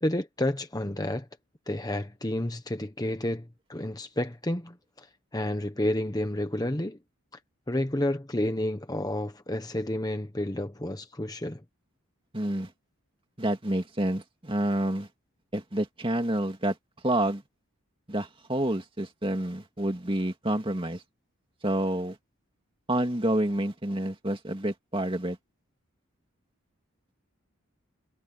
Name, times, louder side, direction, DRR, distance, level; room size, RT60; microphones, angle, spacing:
voice 1, 0.0-1.3 1.7-5.1 5.3-7.0 7.7-11.6, left 1 dB, 15° left, 1.0 m, -30 dB
voice 2, 12.3-12.7 13.4-15.1 15.5-16.8 17.0-17.4 18.1-21.0 21.6-22.2 22.9-25.4, right 1 dB, 25° right, 2.4 m, -28 dB
head